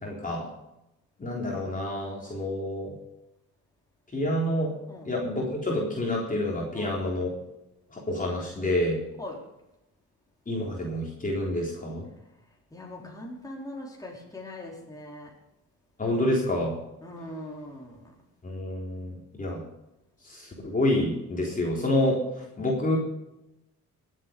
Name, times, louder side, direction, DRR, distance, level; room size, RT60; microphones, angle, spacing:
voice 1, 0.0-0.5 1.2-2.9 4.1-4.7 5.1-7.3 7.9-9.0 10.5-12.1 16.0-16.7 18.4-19.6 20.3-22.2 22.6-23.0, left 1 dB, 25° left, -2 dB, 3.8 m, -28 dB
voice 2, 6.7-7.1 9.2-9.4 12.7-15.3 17.0-18.1, left 1 dB, 10° left, -2 dB, 4.2 m, -41 dB
20.0 x 8.4 x 5.3 m, 0.91 s
cardioid pair, 90°, 30 cm